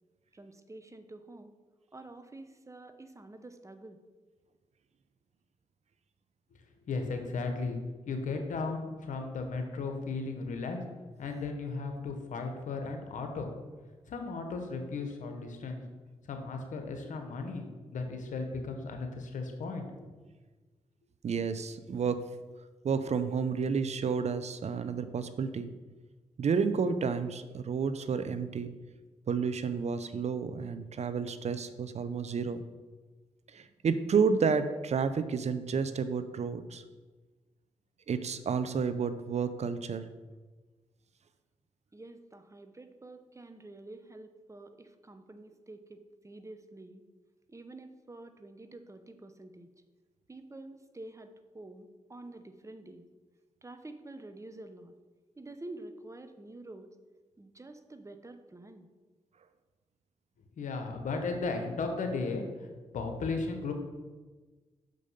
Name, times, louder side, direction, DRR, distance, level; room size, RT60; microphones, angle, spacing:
voice 1, 0.3-1.5 1.9-4.0 41.9-47.0 47.5-49.7 50.3-53.1 53.6-54.9 55.4-56.9 57.4-58.9, right 2 dB, 25° right, 8 dB, 0.8 m, -48 dB
voice 2, 6.9-7.8 8.1-10.8 11.2-13.5 14.1-15.8 16.3-17.7 17.9-20.1 60.6-62.5 62.9-63.7, left 4 dB, 80° left, 5 dB, 1.1 m, -35 dB
voice 3, 21.2-22.3 22.8-25.7 26.4-28.7 29.3-32.6 33.5-36.8 38.1-40.1, right 5 dB, 60° right, 12 dB, 0.6 m, -30 dB
6.2 x 5.3 x 5.6 m, 1.3 s
supercardioid pair, 50°, 13 cm